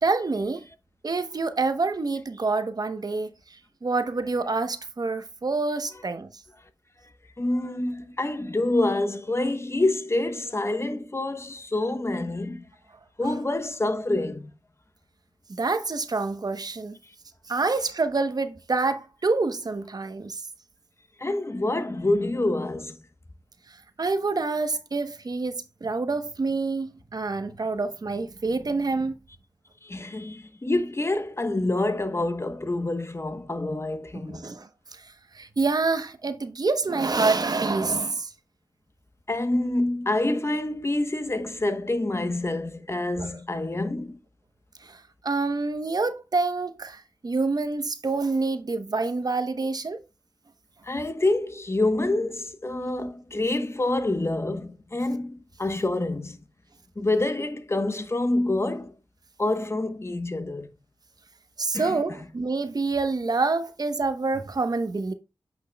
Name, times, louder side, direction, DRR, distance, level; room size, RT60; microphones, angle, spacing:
voice 1, 0.0-0.6 1.0-6.3 15.5-17.0 17.5-20.4 24.0-29.2 34.3-38.3 43.2-43.3 44.8-50.0 61.6-65.1, right 3 dB, 55° right, 0.9 m, -27 dB
voice 2, 7.4-12.7 13.2-14.5 21.2-23.0 29.8-34.5 39.3-44.2 50.8-56.4 57.0-58.9 59.4-60.7 61.7-62.0, left 2 dB, 35° left, 1.0 m, -27 dB
8.5 x 6.0 x 2.2 m
wide cardioid pair, 60°, 8 cm